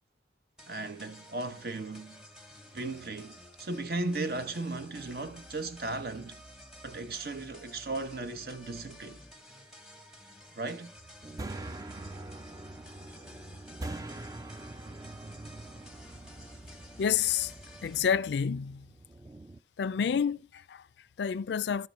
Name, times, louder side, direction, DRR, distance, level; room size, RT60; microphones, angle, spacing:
sound 1, 0.6-18.0, left 1 dB, 5° right, 1.0 m, -52 dB
voice 1, 0.7-2.2 2.7-6.4 6.8-9.2 10.5-10.9, right 2 dB, 55° right, 0.8 m, -36 dB
sound 2, 11.0-19.6, right 2 dB, 20° right, 0.4 m, -44 dB
voice 2, 17.0-17.5 17.8-18.9 19.8-21.9, left 7 dB, 75° left, 0.4 m, -29 dB
12.5 x 4.4 x 5.1 m
head